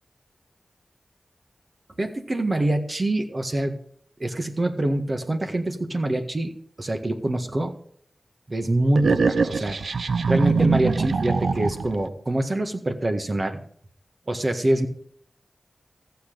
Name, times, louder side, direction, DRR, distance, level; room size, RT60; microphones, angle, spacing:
voice 1, 2.0-3.8 4.2-6.5 6.8-7.7 8.5-9.8 10.3-13.6 14.3-14.9, right 1 dB, 45° right, 6 dB, 1.6 m, -25 dB
sound 1, 8.9-12.0, right 4 dB, 85° right, 0.6 m, -23 dB
14.5 x 8.2 x 5.2 m, 0.62 s
cardioid pair, 45°, 0 cm